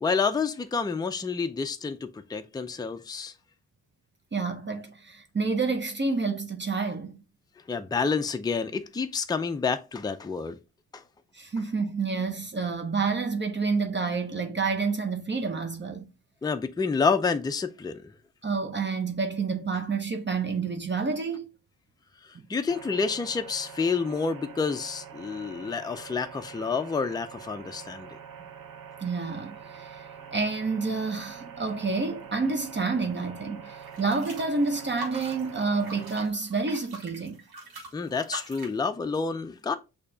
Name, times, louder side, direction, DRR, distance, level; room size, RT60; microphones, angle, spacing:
voice 1, 0.0-3.3 7.7-10.6 10.9-11.0 16.4-18.1 22.5-28.1 37.9-39.8, left 5 dB, 10° left, 0.4 m, -29 dB
voice 2, 4.3-7.2 11.3-16.1 18.4-21.5 29.0-30.1 30.3-37.4, right 4 dB, 30° right, 0.7 m, -29 dB
sound 1, 22.7-36.3, right 7 dB, 65° right, 0.7 m, -45 dB
sound 2, 33.8-38.8, right 3 dB, 85° right, 1.5 m, -42 dB
6.5 x 2.9 x 2.7 m
cardioid pair, 80°, 36 cm